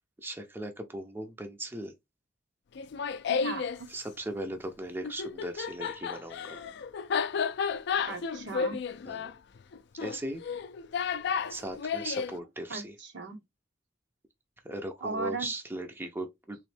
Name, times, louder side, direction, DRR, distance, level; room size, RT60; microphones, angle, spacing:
voice 1, 0.2-1.9 3.9-6.6 9.1-9.3 10.0-10.4 11.5-12.9 14.6-16.6, right 1 dB, 10° right, 0.5 m, -38 dB
Laughter, 2.7-3.8 5.0-12.3, left 6 dB, 60° left, 0.4 m, -32 dB
voice 2, 3.3-3.9 8.0-8.8 12.7-13.4 15.0-15.5, right 3 dB, 65° right, 0.9 m, -37 dB
3.6 x 3.0 x 3.2 m
head